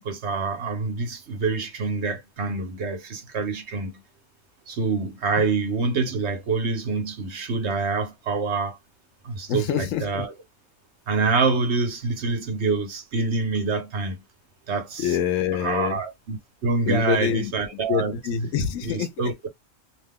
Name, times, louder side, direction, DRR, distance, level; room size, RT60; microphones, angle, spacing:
voice 1, 0.0-4.0 4.7-8.8 9.2-10.3 11.1-14.2 14.7-15.2 15.5-18.2 18.8-19.5, right 4 dB, 60° right, 1.1 m, -26 dB
voice 2, 9.5-10.2 15.0-16.0 16.9-17.5 17.9-19.1, left 8 dB, 80° left, 1.0 m, -25 dB
2.8 x 2.2 x 3.5 m
omnidirectional pair, 1.3 m